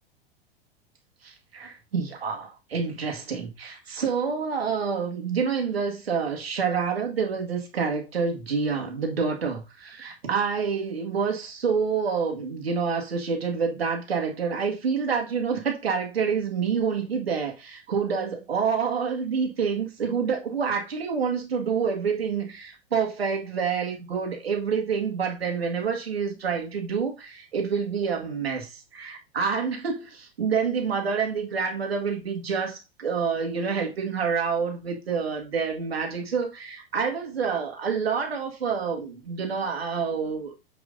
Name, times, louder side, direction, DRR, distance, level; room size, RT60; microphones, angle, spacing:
voice 1, 1.2-40.5, right 6 dB, 80° right, 1.9 m, -27 dB
7.0 x 6.3 x 2.6 m
hypercardioid pair, 100°, 30 cm